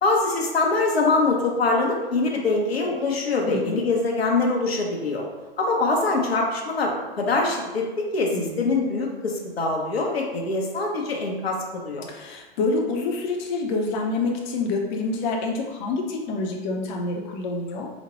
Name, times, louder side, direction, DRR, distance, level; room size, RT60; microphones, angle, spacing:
voice 1, 0.0-5.3 5.6-12.1, left 3 dB, 85° left, 0 dB, 0.7 m, -24 dB
voice 2, 3.5-3.8 8.3-8.6 12.1-17.9, left 3 dB, 50° left, 1 dB, 0.6 m, -27 dB
4.0 x 2.1 x 3.0 m, 1.2 s
figure-of-eight pair, 100°, 30 cm